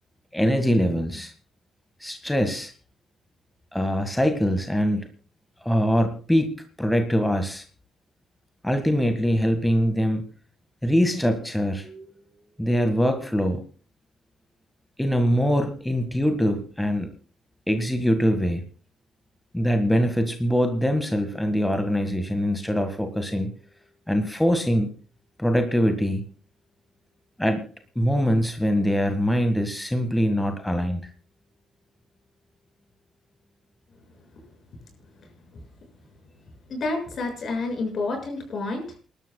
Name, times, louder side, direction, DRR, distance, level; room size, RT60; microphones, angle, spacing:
voice 1, 0.3-1.3 2.0-2.7 3.7-5.1 5.6-7.6 8.6-10.3 10.8-12.3 12.6-13.6 15.0-17.1 17.7-18.6 19.5-23.5 24.1-24.9 25.4-26.2 27.4-27.7 27.9-31.0, equal, 5° left, 6 dB, 1.7 m, -23 dB
voice 2, 36.7-39.0, left 3 dB, 55° left, 3 dB, 6.5 m, -29 dB
28.5 x 12.5 x 2.3 m, 0.34 s
cardioid pair, 90°, 0 cm